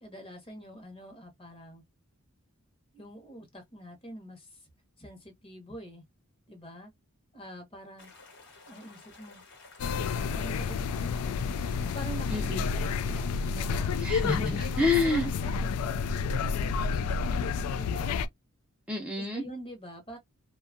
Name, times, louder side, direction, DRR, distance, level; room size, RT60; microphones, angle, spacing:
voice 1, 0.0-1.8 2.9-4.7 5.0-6.0 6.5-6.9 7.3-8.1 8.7-9.4 10.3-11.4 11.9-12.4 12.7-14.3 15.4-18.2 19.2-20.2, equal, 25° left, 0.9 m, -46 dB
sound 1, 8.0-15.4, left 3 dB, 60° left, 1.1 m, -53 dB
sound 2, 9.8-18.3, left 5 dB, 75° left, 0.3 m, -30 dB
voice 2, 12.3-12.6 14.0-15.3 18.9-19.4, left 3 dB, 5° right, 0.5 m, -28 dB
2.6 x 2.3 x 2.4 m
head